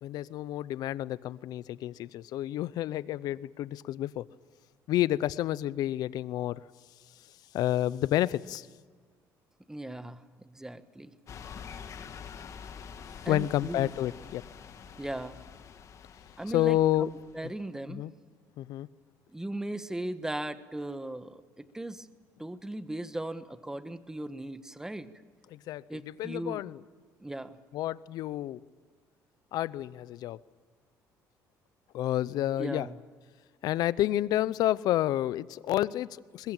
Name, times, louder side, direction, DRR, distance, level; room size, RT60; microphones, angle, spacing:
voice 1, 0.0-4.2 4.9-6.6 7.5-8.7 13.3-14.4 16.5-17.1 17.4-17.5 17.9-18.1 18.6-18.9 25.5-25.8 26.2-26.8 27.7-28.6 29.5-30.4 31.9-32.9 33.6-36.5, left 13 dB, 70° left, 19 dB, 0.7 m, -29 dB
voice 2, 9.7-11.1 13.2-13.9 14.9-15.5 16.4-18.1 19.3-22.1 22.4-25.1 25.9-26.6 27.2-27.6 32.6-33.0, right 1 dB, 10° right, 11 dB, 1.3 m, -38 dB
sound 1, 11.3-17.5, left 7 dB, 50° left, 1.9 m, -46 dB
21.5 x 21.5 x 9.0 m, 1.5 s
cardioid pair, 100°, 7 cm